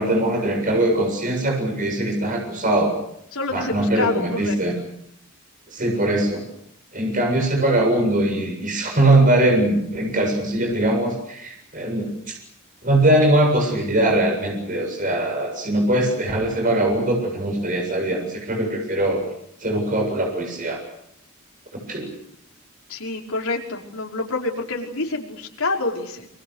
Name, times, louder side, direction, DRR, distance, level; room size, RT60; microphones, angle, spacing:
voice 1, 0.0-3.0 3.5-4.7 5.7-6.4 6.9-12.4 12.8-19.2 19.6-20.8 21.9-22.1, right 1 dB, 40° right, 2 dB, 7.5 m, -21 dB
voice 2, 3.3-4.6 22.9-26.3, left 3 dB, 80° left, 1 dB, 5.4 m, -27 dB
28.0 x 26.0 x 6.6 m, 0.74 s
head